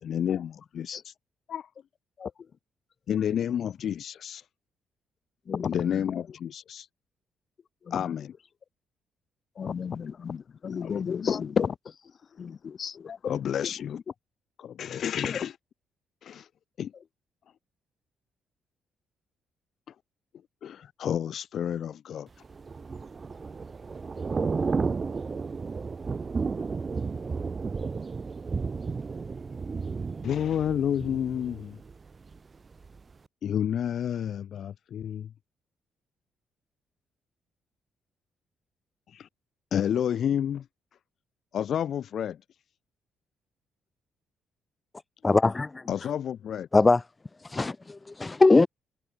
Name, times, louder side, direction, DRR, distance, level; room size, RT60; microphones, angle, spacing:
voice 1, 0.0-1.1 1.5-1.7 3.1-4.4 5.6-6.9 7.9-8.3 10.7-11.0 13.2-14.0 14.6-15.6 16.2-16.5 16.8-16.9 20.6-22.3 30.2-31.8 33.4-35.3 39.1-39.3 39.7-40.7 41.5-42.4 45.9-46.7, left 9 dB, 65° left, 2.1 m, -30 dB
voice 2, 5.5-6.0 7.9-8.1 9.6-11.7 12.4-13.4 15.2-15.3, left 7 dB, 50° left, 3.9 m, -32 dB
Thunder / Rain, 22.4-32.4 32.7-33.0, right 4 dB, 35° right, 3.4 m, -33 dB
voice 3, 45.2-45.9 46.7-47.0 47.4-48.7, left 3 dB, 20° left, 1.1 m, -21 dB
cardioid pair, 90°, 0 cm